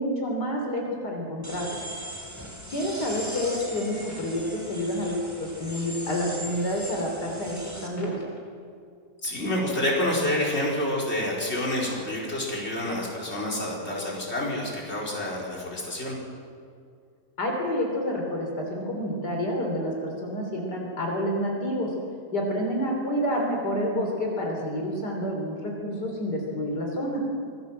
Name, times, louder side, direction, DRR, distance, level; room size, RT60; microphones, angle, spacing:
voice 1, 0.0-1.9 2.7-8.2 17.4-21.9 22.3-27.3, equal, 75° left, 0 dB, 4.1 m, -29 dB
sound 1, 1.4-7.9, equal, 10° right, 3.2 m, -39 dB
voice 2, 9.2-16.2, left 1 dB, 40° left, -3 dB, 5.1 m, -28 dB
25.5 x 18.5 x 7.6 m, 2.2 s
omnidirectional pair, 1.8 m